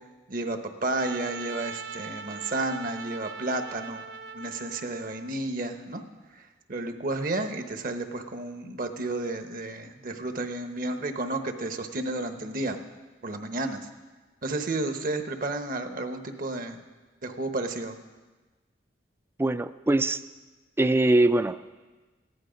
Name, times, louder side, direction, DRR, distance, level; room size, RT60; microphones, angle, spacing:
voice 1, 0.3-4.0 4.3-6.0 6.3-6.4 6.7-12.8 13.2-13.9 14.4-16.8 17.2-18.0, right 2 dB, 50° right, 7 dB, 1.0 m, -32 dB
Trumpet, 0.9-5.3, right 5 dB, 75° right, 0.6 m, -41 dB
voice 2, 19.4-20.2 20.8-21.7, right 2 dB, 15° right, 13 dB, 0.3 m, -22 dB
15.0 x 11.0 x 5.1 m, 1.3 s
head